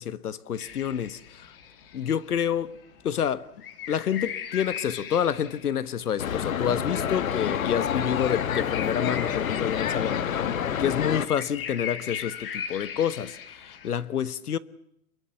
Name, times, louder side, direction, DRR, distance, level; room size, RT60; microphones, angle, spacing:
voice 1, 0.0-1.5 1.9-2.8 3.0-3.5 3.9-14.6, left 9 dB, 90° left, 1.5 m, -28 dB
sound 1, 0.6-14.0, left 8 dB, 40° left, 2.5 m, -39 dB
sound 2, 6.2-11.3, left 8 dB, 65° left, 1.6 m, -28 dB
27.5 x 22.5 x 7.1 m
hypercardioid pair, 170°, 44 cm